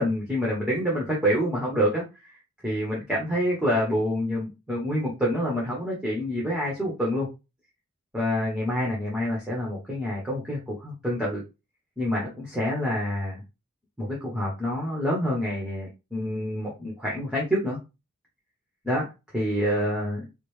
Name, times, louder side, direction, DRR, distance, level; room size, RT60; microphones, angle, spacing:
voice 1, 0.0-2.3 2.6-7.3 8.1-11.4 12.0-13.4 14.0-17.8 18.8-19.1 19.3-20.3, equal, 5° right, -4 dB, 0.9 m, -27 dB
5.0 x 2.0 x 3.1 m, 0.26 s
head